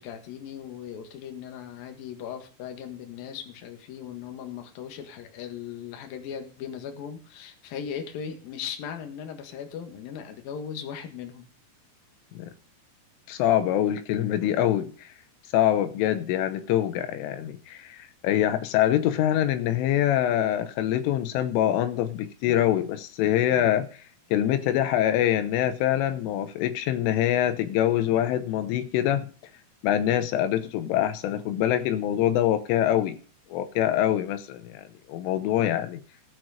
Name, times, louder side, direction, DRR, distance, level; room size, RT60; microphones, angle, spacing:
voice 1, 0.0-11.5, left 8 dB, 60° left, 5 dB, 2.9 m, -38 dB
voice 2, 13.3-15.1 15.5-24.0 24.3-29.3 29.8-33.2 33.5-36.0, left 11 dB, 85° left, 10 dB, 3.4 m, -24 dB
18.5 x 6.2 x 5.0 m, 0.39 s
omnidirectional pair, 5.6 m